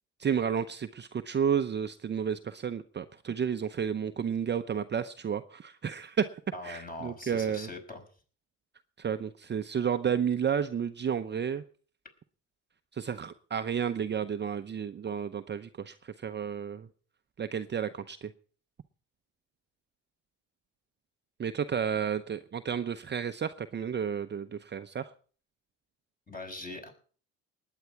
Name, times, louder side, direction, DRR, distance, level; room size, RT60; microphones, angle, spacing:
voice 1, 0.2-7.7 9.0-11.6 12.9-16.9 17.4-18.3 21.4-25.1, right 7 dB, 30° right, 9 dB, 0.8 m, -31 dB
voice 2, 6.5-8.0 26.3-26.9, left 2 dB, 25° left, 4 dB, 5.6 m, -41 dB
20.0 x 9.1 x 4.7 m, 0.43 s
hypercardioid pair, 70°, 35 cm